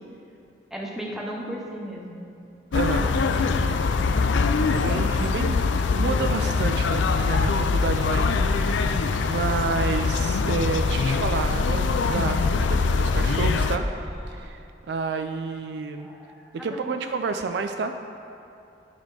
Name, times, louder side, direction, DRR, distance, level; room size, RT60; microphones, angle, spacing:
voice 1, 0.7-2.2 16.0-16.9, equal, ahead, -3 dB, 0.9 m, -36 dB
sound 1, 2.7-13.8, left 4 dB, 80° left, 0.4 m, -23 dB
voice 2, 2.7-3.9 4.7-5.6 5.9-13.9 14.3-14.6 14.9-16.1 16.5-18.0, right 4 dB, 60° right, 7 dB, 0.4 m, -30 dB
sound 2, 8.0-14.4, equal, 35° right, 1.9 m, -45 dB
11.5 x 4.2 x 4.8 m, 2.6 s
head